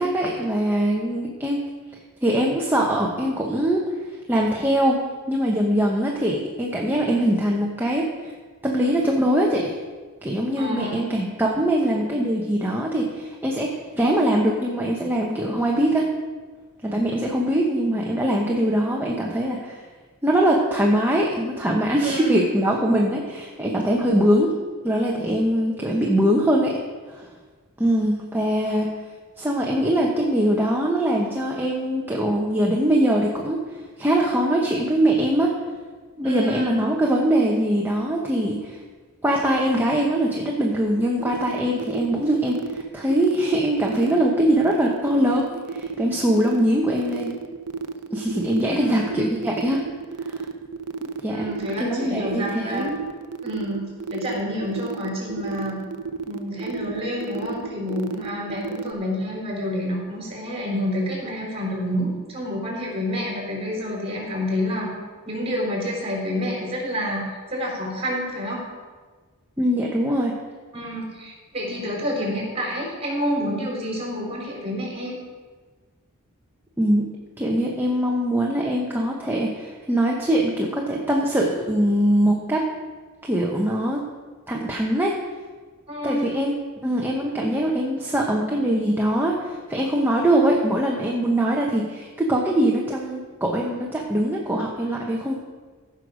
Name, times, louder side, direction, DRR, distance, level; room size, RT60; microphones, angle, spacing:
voice 1, 0.0-1.6 2.2-3.8 4.3-5.0 5.3-8.3 8.6-9.8 10.2-16.1 16.8-19.8 20.2-24.5 24.8-26.8 27.1-27.3 27.8-28.9 29.4-35.5 36.2-38.8 39.2-47.3 48.1-49.8 50.2-50.5 51.2-51.5 51.8-53.0 69.6-70.3 76.8-77.1 77.4-82.7 83.3-84.0 84.5-85.2 86.0-86.5 86.8-95.3, right 1 dB, 10° right, -2 dB, 1.0 m, -22 dB
voice 2, 10.5-11.0 22.0-22.5 36.2-36.8 48.6-49.3 51.3-52.8 53.4-55.8 56.3-64.9 65.2-67.2 67.5-68.7 70.7-75.1 85.9-86.3, equal, 30° right, -3 dB, 4.1 m, -28 dB
sound 1, 41.2-58.9, right 5 dB, 70° right, 0.6 m, -32 dB
15.0 x 6.3 x 5.1 m, 1.4 s
head